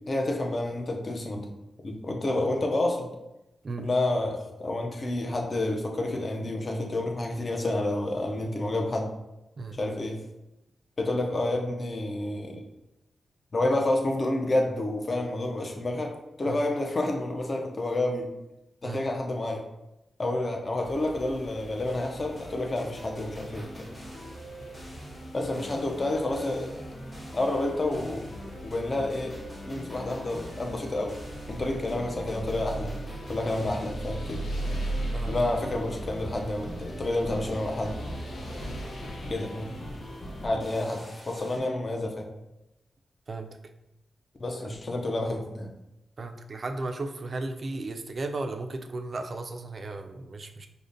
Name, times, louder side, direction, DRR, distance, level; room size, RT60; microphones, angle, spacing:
voice 1, 0.0-1.5 1.8-3.1 3.8-9.1 9.7-10.2 11.0-12.6 13.5-18.3 18.8-19.6 20.2-23.9 25.3-26.9 27.3-28.2 28.6-29.4 29.7-31.2 31.5-32.9 33.3-34.4 35.3-38.0 39.3-39.7 40.4-42.3 44.4-45.7, left 2 dB, 35° left, 2 dB, 0.4 m, -29 dB
sound 1, 20.8-40.5, right 1 dB, 80° left, 0.6 m, -39 dB
sound 2, 21.9-41.6, equal, 20° left, 0.8 m, -43 dB
voice 2, 46.2-50.7, right 3 dB, 40° right, 5 dB, 0.3 m, -35 dB
5.0 x 2.1 x 2.5 m, 0.92 s
wide cardioid pair, 120°, 0 cm